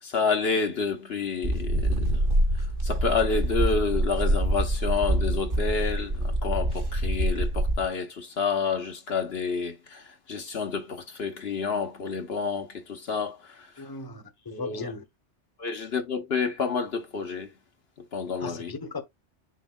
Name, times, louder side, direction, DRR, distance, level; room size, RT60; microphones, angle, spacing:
voice 1, 0.0-2.3 2.5-13.8 14.5-14.9 15.6-17.5 18.1-18.7, left 5 dB, 60° left, 1.2 m, -29 dB
sound 1, 1.4-7.9, right 1 dB, 50° right, 1.4 m, -25 dB
voice 2, 13.8-15.0 18.4-19.0, left 3 dB, 20° left, 1.0 m, -37 dB
6.5 x 6.4 x 2.2 m
omnidirectional pair, 1.2 m